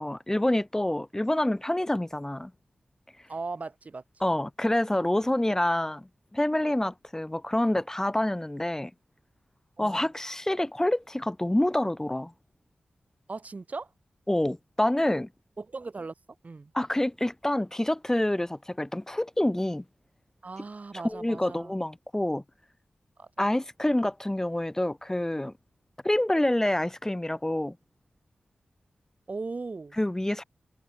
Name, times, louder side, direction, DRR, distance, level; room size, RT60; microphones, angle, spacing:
voice 1, 0.0-2.5 4.2-6.1 6.3-8.9 9.8-12.3 14.3-15.3 16.7-19.8 20.9-22.4 23.4-25.5 26.0-27.7 30.0-30.4, left 1 dB, 15° left, 3.0 m, -27 dB
voice 2, 3.3-4.0 9.8-10.1 13.3-13.9 15.6-16.1 16.4-16.7 20.4-21.7 23.2-23.3 29.3-30.0, right 3 dB, 50° right, 7.1 m, -38 dB
cardioid pair, 50°, 3 cm